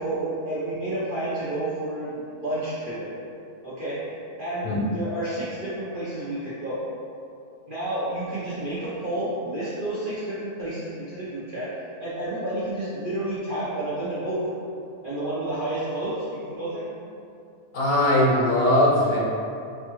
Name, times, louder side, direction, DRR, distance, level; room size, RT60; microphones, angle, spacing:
voice 1, 0.0-3.1 3.6-4.0 4.4-6.8 7.7-11.7 12.0-14.4 15.0-16.9, right 1 dB, 50° right, -12 dB, 0.6 m, -30 dB
voice 2, 17.7-19.2, left 1 dB, 75° left, -4 dB, 1.2 m, -20 dB
4.3 x 2.3 x 2.9 m, 2.5 s
omnidirectional pair, 1.7 m